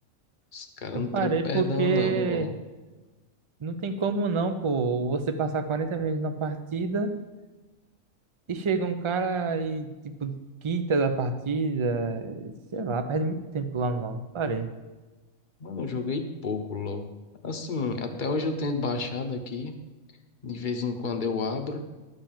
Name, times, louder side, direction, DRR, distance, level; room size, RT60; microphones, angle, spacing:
voice 1, 0.5-2.6 15.6-17.1 17.4-19.8 20.4-21.8, left 4 dB, 40° left, 6 dB, 1.0 m, -30 dB
voice 2, 1.1-2.5 3.6-7.1 8.5-9.9 10.2-10.4 10.6-14.7, right 4 dB, 35° right, 9 dB, 0.5 m, -27 dB
11.5 x 5.4 x 7.2 m, 1.2 s
omnidirectional pair, 1.4 m